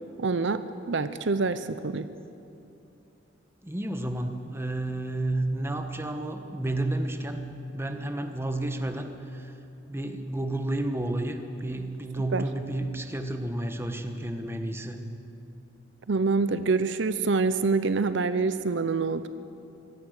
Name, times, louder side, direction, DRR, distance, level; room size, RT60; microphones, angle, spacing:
voice 1, 0.2-2.1 12.3-12.4 16.1-19.3, right 4 dB, 65° right, 12 dB, 0.7 m, -26 dB
voice 2, 3.6-7.4 7.7-9.5 9.9-15.1, right 1 dB, 15° right, 7 dB, 1.2 m, -31 dB
24.0 x 17.0 x 6.5 m, 2.7 s
head